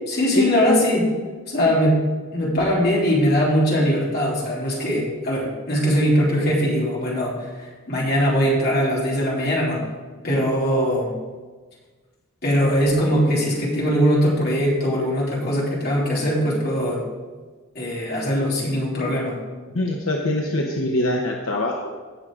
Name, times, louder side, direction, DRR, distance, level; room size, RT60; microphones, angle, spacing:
voice 1, 0.1-1.1 1.5-2.0 2.3-7.4 7.9-9.8 10.2-11.1 12.4-17.0 17.7-19.4, equal, 45° left, -5 dB, 3.2 m, -21 dB
voice 2, 19.7-21.9, left 1 dB, 75° left, 0 dB, 1.0 m, -24 dB
17.0 x 6.4 x 3.8 m, 1.3 s
head